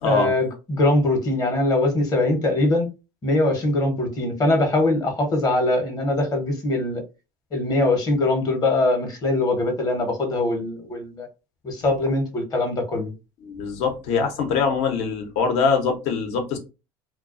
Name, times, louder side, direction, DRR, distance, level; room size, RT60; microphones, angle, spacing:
voice 1, 0.0-2.9 3.2-7.0 7.5-11.3 11.6-13.1, left 2 dB, 35° left, 0.8 m, -22 dB
voice 2, 13.4-16.6, left 5 dB, 70° left, 0.8 m, -23 dB
2.3 x 2.2 x 2.4 m
supercardioid pair, 100°, 12 cm